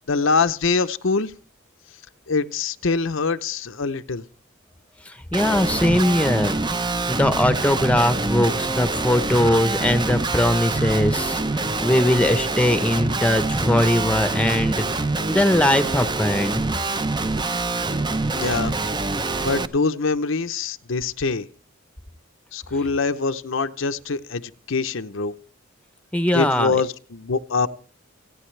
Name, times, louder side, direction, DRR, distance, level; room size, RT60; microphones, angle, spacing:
voice 1, 0.1-1.3 2.3-4.2 18.3-18.7 19.4-21.5 22.5-25.3 26.3-27.7, left 4 dB, 65° left, 0.8 m, -24 dB
voice 2, 5.1-6.5 7.1-14.8 15.3-16.6 26.1-26.8, left 1 dB, 5° left, 0.9 m, -20 dB
Guitar, 5.3-19.7, right 3 dB, 20° right, 0.7 m, -25 dB
28.5 x 9.5 x 3.3 m
head